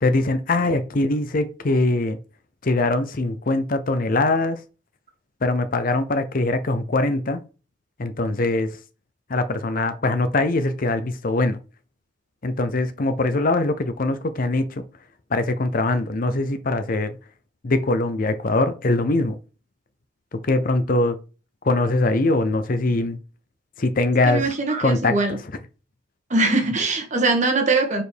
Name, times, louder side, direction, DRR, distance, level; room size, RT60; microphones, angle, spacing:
voice 1, 0.0-2.2 2.6-4.6 5.4-7.4 8.0-8.7 9.3-11.6 12.4-14.8 15.3-17.2 17.6-19.4 20.3-21.2 21.6-23.2 23.8-24.5 24.8-25.4, left 2 dB, 45° left, 0.6 m, -22 dB
voice 2, 24.3-25.4 26.3-28.0, right 3 dB, 35° right, 1.3 m, -21 dB
5.2 x 4.4 x 4.5 m
head